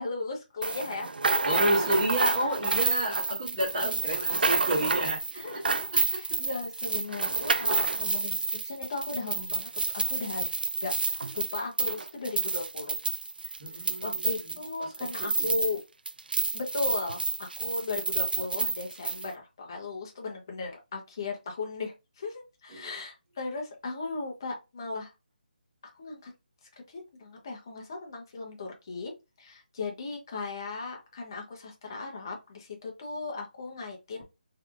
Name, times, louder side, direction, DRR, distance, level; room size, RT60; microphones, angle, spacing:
voice 1, 0.0-2.1 2.4-2.5 4.1-4.2 4.7-10.5 10.8-12.9 13.4-15.8 16.5-25.1 25.9-26.3 26.9-29.1 29.4-34.2, left 3 dB, 25° left, 0.8 m, -37 dB
sound 1, 0.6-15.8 16.1-19.3, right 4 dB, 75° right, 0.5 m, -29 dB
voice 2, 1.4-5.2 5.9-6.4 13.6-14.3 14.8-15.5 22.7-22.9, right 1 dB, 25° right, 1.5 m, -30 dB
3.3 x 3.3 x 2.4 m
hypercardioid pair, 175°, 5 cm